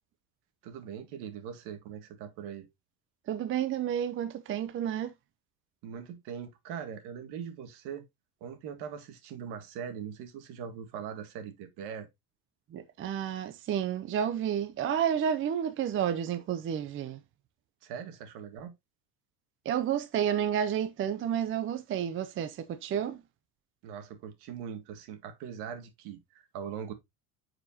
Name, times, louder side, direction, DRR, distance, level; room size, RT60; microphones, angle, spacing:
voice 1, 0.6-2.7 5.8-8.0 8.4-12.1 17.8-18.7 23.8-26.9, right 7 dB, 70° right, 1.9 m, -41 dB
voice 2, 3.3-5.1 12.7-17.2 19.7-23.2, right 9 dB, 30° right, 0.6 m, -30 dB
9.3 x 5.0 x 2.8 m
cardioid pair, 135°, 40 cm